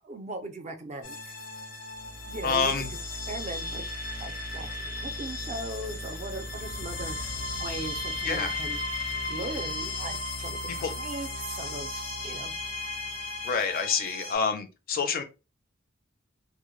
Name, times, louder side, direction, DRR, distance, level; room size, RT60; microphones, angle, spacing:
voice 1, 0.0-1.3 2.1-2.9 3.3-3.9 4.2-8.8 9.3-12.5, right 2 dB, 35° right, 0.4 m, -39 dB
sound 1, 1.0-14.4, left 2 dB, 90° left, 0.7 m, -35 dB
voice 2, 2.4-2.9 8.2-8.6 10.8-10.9 13.4-15.2, left 5 dB, 45° left, 0.4 m, -27 dB
2.1 x 2.0 x 2.9 m
head